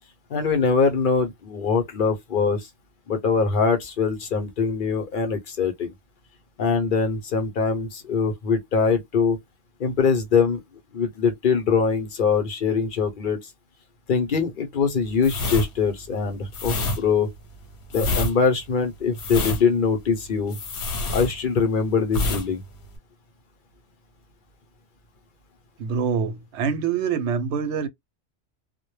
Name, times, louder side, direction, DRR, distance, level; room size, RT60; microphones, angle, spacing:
voice 1, 0.3-2.7 3.1-5.9 6.6-9.4 9.8-10.6 10.9-13.4 14.1-17.3 17.9-20.6 21.1-22.6, left 5 dB, 55° left, 0.7 m, -23 dB
sound 1, 15.2-21.8 22.1-22.5 22.7-23.0, left 2 dB, 75° left, 1.0 m, -27 dB
voice 2, 25.8-27.9, right 6 dB, 85° right, 0.9 m, -25 dB
2.1 x 2.1 x 3.0 m
omnidirectional pair, 1.1 m